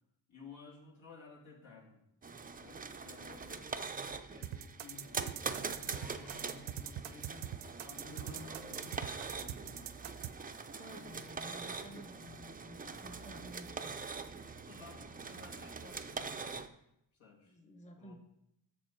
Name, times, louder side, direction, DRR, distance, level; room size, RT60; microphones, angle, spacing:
voice 1, 0.3-2.0 2.4-3.9 4.3-5.1 5.6-7.4 7.8-9.9 14.7-16.6 17.1-17.6 18.0-18.2, left 3 dB, 80° left, -2 dB, 2.2 m, -54 dB
sound 1, 2.2-16.7, right 4 dB, 20° right, 0.3 m, -43 dB
sound 2, 4.4-10.3, right 11 dB, 75° right, 0.6 m, -42 dB
sound 3, 5.8-6.8, left 2 dB, 50° left, 1.4 m, -61 dB
voice 2, 10.8-14.0 17.4-18.2, left 1 dB, 15° left, 6 dB, 0.7 m, -52 dB
7.6 x 6.7 x 4.4 m, 0.79 s
wide cardioid pair, 120°, 46 cm